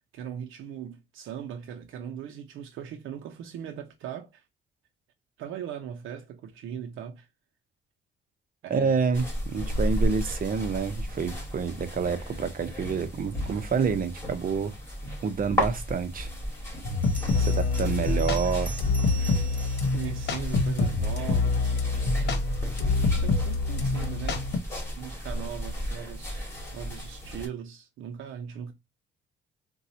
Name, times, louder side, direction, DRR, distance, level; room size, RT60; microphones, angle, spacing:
voice 1, 0.1-4.4 5.4-7.3 8.6-9.1 17.8-18.3 19.9-21.8 23.1-24.6 25.0-28.7, right 9 dB, 85° right, 0.6 m, -39 dB
voice 2, 8.7-14.7 15.2-16.3 17.5-18.8, right 5 dB, 45° right, 0.8 m, -28 dB
sound 1, 9.1-27.5, equal, 15° left, 2.1 m, -34 dB
sound 2, 16.8-24.6, left 3 dB, 60° left, 1.0 m, -26 dB
Bell, 17.0-20.9, right 7 dB, 25° right, 1.3 m, -45 dB
4.0 x 2.3 x 2.7 m
cardioid pair, 90°, 20 cm